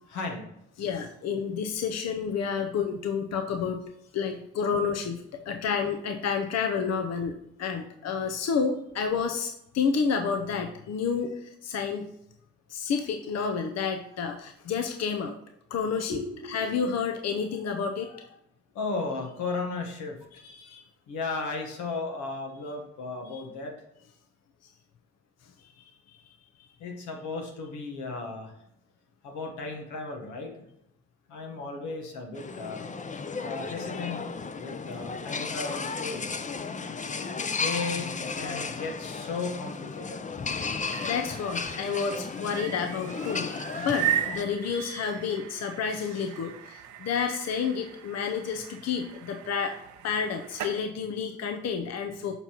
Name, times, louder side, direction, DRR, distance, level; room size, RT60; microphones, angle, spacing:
voice 1, 0.1-0.5 16.1-16.8 18.7-20.2 21.1-23.7 26.8-28.5 29.2-30.6 31.3-32.8 33.4-34.2 34.5-36.4 37.5-40.2, left 3 dB, 90° left, 2 dB, 1.2 m, -35 dB
voice 2, 0.8-3.8 4.1-12.1 12.7-15.4 15.7-18.3 20.4-20.8 23.3-23.4 25.8-26.3 41.0-49.8 50.0-52.4, left 6 dB, 60° left, 5 dB, 0.6 m, -30 dB
sound 1, 32.3-44.4, left 4 dB, 25° left, 0.5 m, -34 dB
sound 2, 40.7-50.8, right 11 dB, 75° right, 0.6 m, -37 dB
7.1 x 5.3 x 2.9 m, 0.79 s
supercardioid pair, 60°, 29 cm